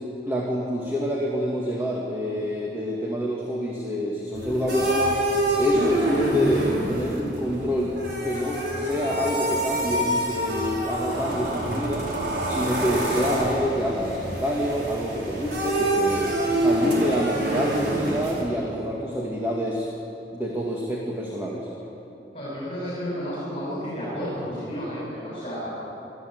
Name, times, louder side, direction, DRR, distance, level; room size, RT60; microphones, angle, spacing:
voice 1, 0.2-7.9 8.2-12.1 12.5-16.4 16.6-19.9 20.3-21.7, equal, 15° right, -3 dB, 2.1 m, -27 dB
sound 1, 4.3-18.4, right 1 dB, 75° right, 4.8 m, -26 dB
voice 2, 22.3-25.9, equal, 30° left, -8 dB, 6.8 m, -32 dB
25.0 x 14.0 x 8.0 m, 2.9 s
head